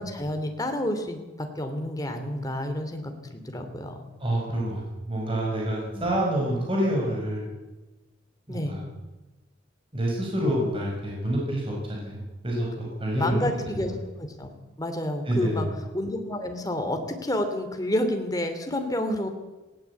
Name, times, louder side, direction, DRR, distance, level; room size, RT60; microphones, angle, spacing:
voice 1, 0.0-4.0 5.9-6.2 8.5-8.8 13.2-13.9 14.2-14.5 14.8-15.7 15.9-19.3, left 1 dB, 20° left, 5 dB, 2.8 m, -29 dB
voice 2, 4.2-4.8 5.1-7.5 8.5-8.8 9.9-12.7 13.0-13.5 15.3-15.7, right 1 dB, 30° right, -3 dB, 5.5 m, -27 dB
18.5 x 17.0 x 8.3 m, 1.1 s
head